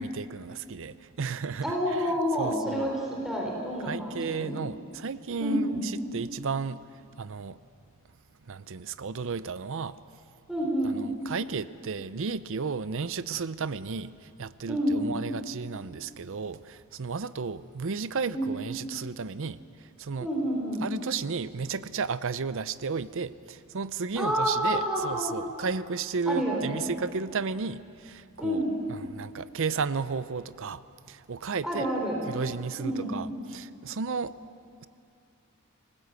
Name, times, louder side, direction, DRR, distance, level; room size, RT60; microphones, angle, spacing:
voice 1, 0.0-2.0 2.4-2.9 3.8-6.8 7.2-7.6 8.5-10.0 11.3-20.3 20.8-28.6 28.9-30.8 31.1-31.9 32.3-34.3, right 5 dB, 60° right, 15 dB, 0.6 m, -33 dB
voice 2, 1.6-4.5 5.4-5.9 10.5-11.0 14.7-15.0 18.3-18.5 20.2-20.8 24.2-25.3 26.3-26.8 28.4-28.8 31.6-32.2 32.8-33.2, equal, ahead, -2 dB, 4.2 m, -28 dB
28.0 x 19.5 x 8.2 m, 2.4 s
head